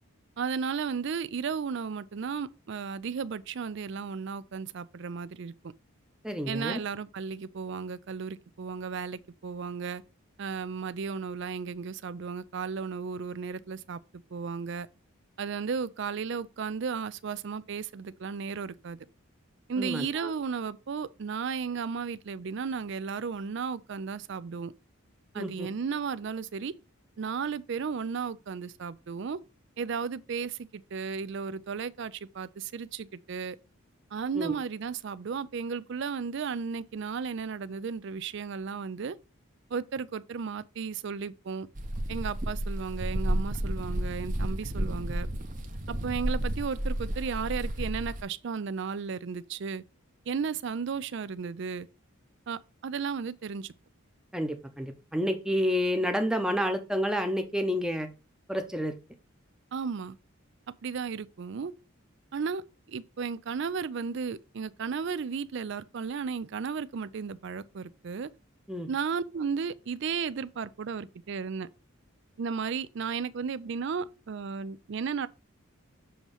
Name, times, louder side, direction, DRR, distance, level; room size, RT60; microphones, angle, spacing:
voice 1, 0.4-5.7 6.5-10.0 10.4-14.9 15.4-19.0 19.7-24.7 25.3-26.7 27.2-29.4 29.8-33.6 34.1-39.2 39.7-41.7 42.1-45.3 45.9-49.8 50.3-51.9 52.5-53.7 59.7-60.2 60.7-61.7 62.3-62.6 62.9-68.3 68.9-71.7 72.4-75.3, right 5 dB, 55° right, 0.4 m, -34 dB
voice 2, 6.2-6.8 19.8-20.3 25.3-25.7 34.3-34.6 54.3-58.1 58.5-59.0 68.7-68.9, equal, 5° right, 0.7 m, -29 dB
sound 1, 41.7-48.2, right 1 dB, 35° right, 0.9 m, -32 dB
7.1 x 3.1 x 5.3 m
head